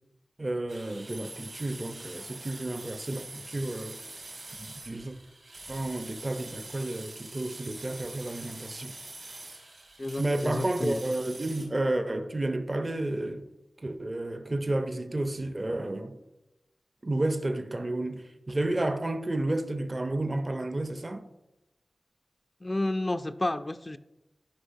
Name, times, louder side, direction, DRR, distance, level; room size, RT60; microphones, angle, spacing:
voice 1, 0.4-4.0 4.6-5.1 5.7-9.0 10.2-13.5 13.8-16.2 17.0-21.2, right 2 dB, 40° right, 0.5 m, -31 dB
sound 1, 0.7-11.7, right 2 dB, 80° right, 2.4 m, -44 dB
voice 2, 10.0-11.0 22.6-24.0, left 1 dB, 35° left, 0.3 m, -31 dB
10.0 x 5.0 x 2.6 m
cardioid pair, 50°, 0 cm